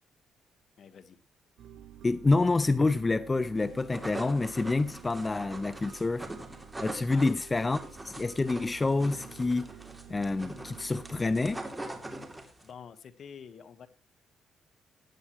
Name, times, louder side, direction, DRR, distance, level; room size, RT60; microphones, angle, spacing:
voice 1, 0.8-1.2 7.1-7.4 12.5-13.9, left 7 dB, 60° left, 1.5 m, -48 dB
sound 1, 1.6-11.6, right 9 dB, 75° right, 0.8 m, -50 dB
voice 2, 2.0-6.3 6.8-7.8 8.0-9.7 10.1-11.6, left 3 dB, 25° left, 0.6 m, -27 dB
sound 2, 3.1-3.5 5.1-5.5 7.2-7.6 9.2-9.6, left 8 dB, 90° left, 7.8 m, -70 dB
sound 3, 3.6-12.7, right 1 dB, 10° right, 2.9 m, -43 dB
16.5 x 10.0 x 3.1 m
cardioid pair, 90°, 0 cm